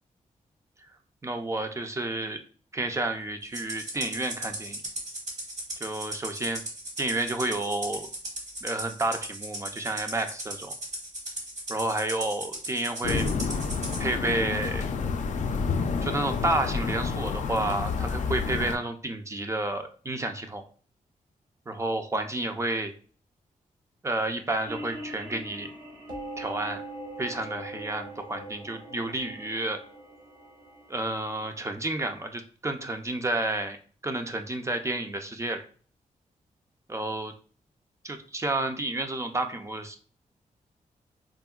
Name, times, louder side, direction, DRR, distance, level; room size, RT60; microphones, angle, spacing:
voice 1, 1.2-2.4 2.7-4.8 5.8-6.6 7.0-8.1 8.6-10.8 11.7-13.3 14.0-14.9 16.0-20.6 21.7-22.9 24.0-25.7 26.4-26.8 27.2-29.8 30.9-33.8 34.0-35.6 36.9-37.3 38.0-40.0, right 2 dB, 20° right, 6 dB, 0.4 m, -30 dB
Rattle (instrument), 3.5-14.0, right 1 dB, 55° right, 1.1 m, -37 dB
sound 1, 13.0-18.8, left 5 dB, 60° left, 0.4 m, -29 dB
sound 2, 24.7-31.6, right 1 dB, 85° right, 1.0 m, -42 dB
3.6 x 2.1 x 2.3 m, 0.42 s
cardioid pair, 70°, 14 cm